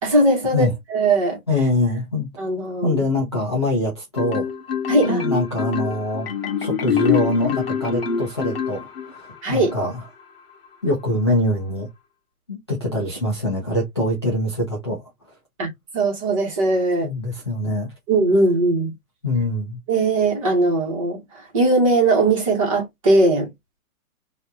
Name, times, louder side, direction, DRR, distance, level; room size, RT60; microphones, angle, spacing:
voice 1, 0.0-1.4 2.4-3.0 4.9-5.2 9.4-9.7 15.6-17.1 18.1-18.9 19.9-23.5, right 2 dB, 25° right, 1.5 m, -19 dB
voice 2, 1.5-2.3 2.8-4.5 5.0-6.3 6.6-10.0 10.8-11.9 12.5-15.0 17.0-17.9 19.2-19.8, left 1 dB, 20° left, 0.6 m, -23 dB
Marimba xylophone, 4.2-9.3, left 6 dB, 40° left, 1.1 m, -25 dB
4.2 x 2.8 x 2.4 m
hypercardioid pair, 180°, 43 cm